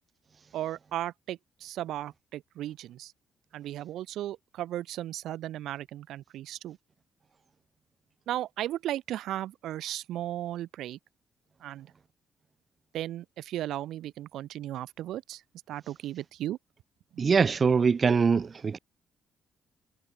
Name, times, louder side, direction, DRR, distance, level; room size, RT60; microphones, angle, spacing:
voice 1, 0.5-3.1 3.5-6.8 8.3-11.0 11.6-11.9 12.9-15.4 15.7-16.6 17.1-17.2, right 13 dB, 80° right, 1.0 m, -36 dB
voice 2, 17.2-18.8, right 5 dB, 40° right, 0.4 m, -23 dB
cardioid pair, 90°, 0 cm